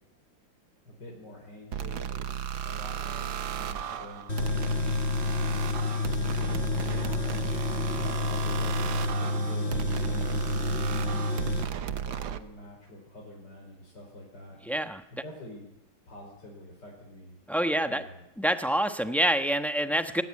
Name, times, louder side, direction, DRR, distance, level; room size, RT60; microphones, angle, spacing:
voice 1, 0.9-2.3 2.6-4.8 6.5-7.7 7.9-10.4 10.7-14.6 15.1-15.7 16.1-17.4 17.8-18.2, left 1 dB, 60° left, -2 dB, 5.5 m, -46 dB
sound 1, 1.7-12.4, right 8 dB, 85° right, 1.8 m, -34 dB
Tools, 4.3-11.6, left 3 dB, 35° left, 2.2 m, -29 dB
voice 2, 14.7-15.0 17.5-18.0 18.4-20.2, right 1 dB, ahead, 7 dB, 0.7 m, -26 dB
21.5 x 18.0 x 9.8 m, 0.87 s
omnidirectional pair, 2.1 m